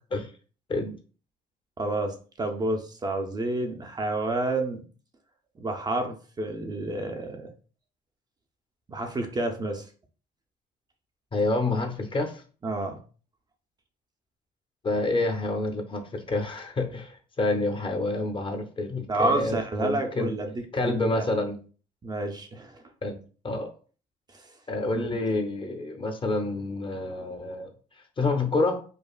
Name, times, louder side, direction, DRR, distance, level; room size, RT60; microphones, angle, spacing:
voice 1, 1.8-4.8 5.6-7.5 8.9-9.9 12.6-13.0 19.1-20.5 20.8-21.3 22.0-22.8 24.3-24.5 24.8-25.2, right 2 dB, 25° right, 4 dB, 0.5 m, -30 dB
voice 2, 11.3-12.4 14.8-20.3 20.7-21.6 23.0-23.2 23.4-23.7 24.7-27.7 28.2-28.8, left 2 dB, 30° left, 5 dB, 0.7 m, -28 dB
5.0 x 2.3 x 2.3 m, 0.39 s
cardioid pair, 110°, 17 cm